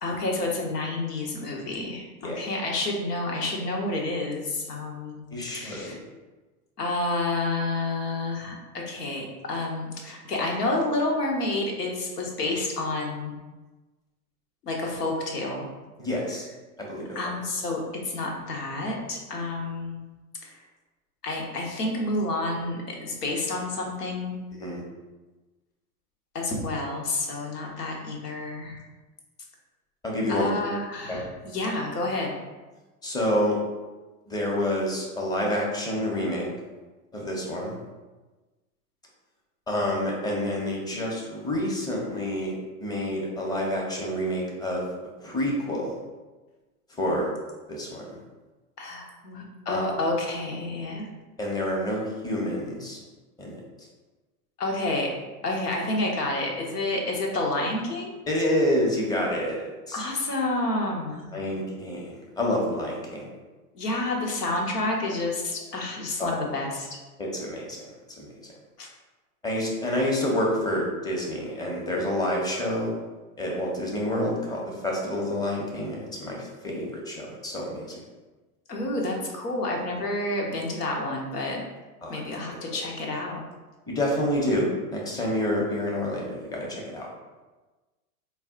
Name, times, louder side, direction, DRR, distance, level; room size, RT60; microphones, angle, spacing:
voice 1, 0.0-5.2 5.5-6.0 6.8-13.3 14.6-15.7 17.1-20.0 20.4-20.6 21.2-24.4 26.3-28.8 30.3-32.4 48.8-51.1 54.6-55.1 55.4-58.1 59.9-61.2 63.7-66.9 68.8-68.9 78.7-81.6 82.1-83.4, left 2 dB, 85° left, 0 dB, 1.0 m, -29 dB
voice 2, 5.3-6.0 16.0-16.4 16.8-17.2 24.6-24.8 30.0-30.5 31.1-31.2 33.0-33.6 34.3-36.5 37.1-37.8 39.7-42.5 42.8-44.9 45.2-46.0 47.0-47.3 47.7-48.2 49.7-49.8 51.4-53.0 53.4-53.6 58.3-60.0 61.3-63.2 66.2-66.3 67.2-68.3 69.4-72.9 73.4-78.0 82.0-82.2 82.7-82.8 83.9-87.1, left 1 dB, 10° left, -3 dB, 0.7 m, -28 dB
4.1 x 2.3 x 3.6 m, 1.2 s
hypercardioid pair, 105°, 46 cm